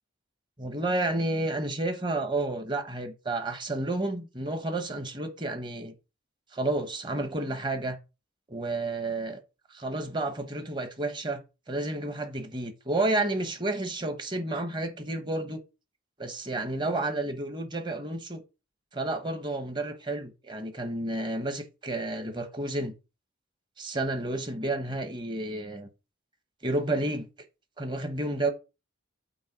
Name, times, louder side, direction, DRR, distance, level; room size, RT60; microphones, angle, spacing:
voice 1, 0.6-5.9 6.5-8.0 8.5-9.4 9.7-15.6 16.2-18.4 18.9-22.9 23.8-25.9 26.6-27.3 27.8-28.5, right 2 dB, 20° right, 1.1 m, -31 dB
8.3 x 3.2 x 6.1 m
head